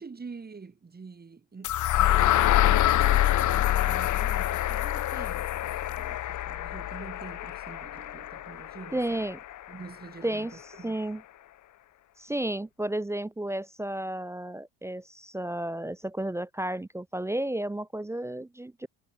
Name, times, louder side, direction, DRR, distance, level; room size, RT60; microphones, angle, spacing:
voice 1, 0.0-9.3 9.7-11.0, right 4 dB, 25° right, 6.4 m, -46 dB
sound 1, 1.6-9.6, left 13 dB, 45° left, 1.3 m, -26 dB
voice 2, 8.9-9.4 10.2-11.2 12.2-18.9, right 1 dB, 5° right, 0.6 m, -32 dB
supercardioid pair, 85°, 40 cm